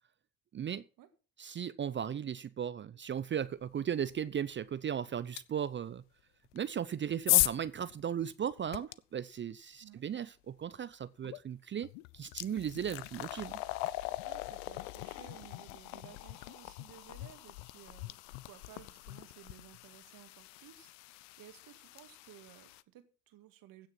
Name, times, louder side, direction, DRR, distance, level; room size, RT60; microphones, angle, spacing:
voice 1, 0.5-0.8 1.4-6.0 6.5-13.6, right 8 dB, 30° right, 0.7 m, -36 dB
sound 1, 5.4-5.5 6.5-8.9 11.2-11.4 11.8-22.8, left 20 dB, 70° left, 0.8 m, -37 dB
voice 2, 14.2-23.9, right 12 dB, 55° right, 2.2 m, -57 dB
16.0 x 6.5 x 5.9 m
hypercardioid pair, 70°, 39 cm